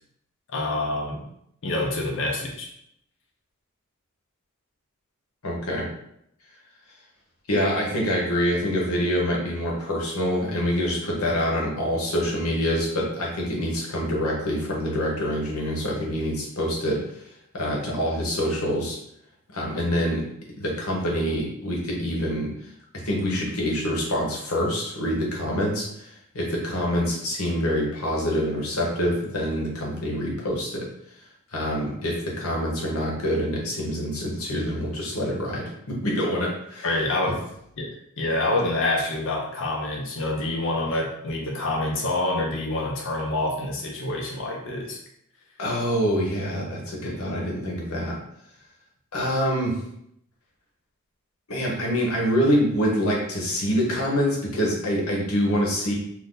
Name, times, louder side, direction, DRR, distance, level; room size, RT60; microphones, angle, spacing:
voice 1, 0.5-1.2 1.6-2.7 36.8-37.3 37.8-37.9 38.2-45.0 47.0-47.2, left 2 dB, 60° left, 0 dB, 0.6 m, -27 dB
voice 2, 5.4-5.9 7.5-17.2 17.5-19.0 19.5-20.2 20.6-22.5 23.0-30.9 31.5-35.7 36.0-36.9 45.6-48.2 49.1-49.8 51.5-55.9, equal, 80° left, -2 dB, 1.0 m, -26 dB
2.6 x 2.6 x 3.7 m, 0.75 s
head